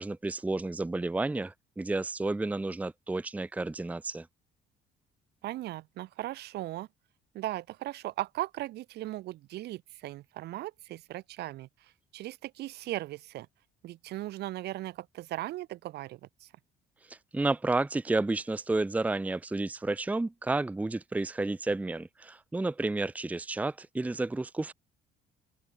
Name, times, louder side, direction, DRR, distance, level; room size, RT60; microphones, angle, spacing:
voice 1, 0.0-4.3 17.1-24.7, right 2 dB, 10° right, 0.6 m, -31 dB
voice 2, 5.4-6.9 7.3-13.5 13.8-16.5, right 16 dB, 75° right, 1.9 m, -38 dB
cardioid pair, 110°, 17 cm